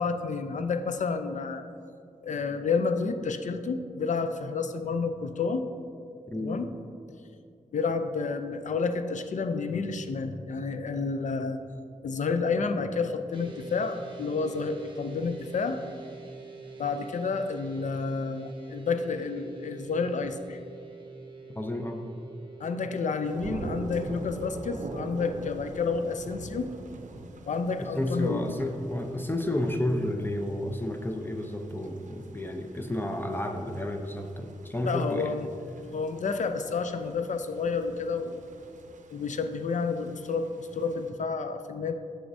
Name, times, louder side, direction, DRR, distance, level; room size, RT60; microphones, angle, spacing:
voice 1, 0.0-1.6 2.2-5.7 6.4-6.7 7.7-11.6 12.0-15.8 16.8-20.6 22.6-26.7 27.5-28.4 34.8-35.5 35.9-38.4 39.1-41.9, left 4 dB, 60° left, 8 dB, 0.5 m, -30 dB
voice 2, 6.3-6.6 21.5-22.0 28.0-35.3, left 1 dB, 15° left, 4 dB, 0.6 m, -31 dB
sound 1, 13.3-25.5, right 4 dB, 35° right, 0.9 m, -46 dB
sound 2, 23.2-41.1, right 2 dB, 60° right, 0.6 m, -44 dB
7.8 x 6.2 x 2.7 m, 2.4 s
cardioid pair, 55°, 14 cm